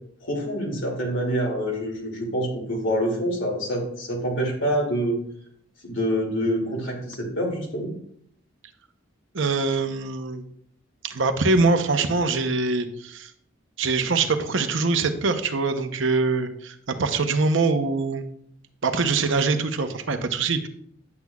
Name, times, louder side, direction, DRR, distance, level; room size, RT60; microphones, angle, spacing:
voice 1, 0.2-5.2 5.8-7.9, equal, 70° left, -1 dB, 2.4 m, -26 dB
voice 2, 9.3-10.4 11.0-13.3 13.8-18.3 18.8-20.7, right 3 dB, 70° right, 8 dB, 0.8 m, -23 dB
9.5 x 8.1 x 2.3 m, 0.66 s
head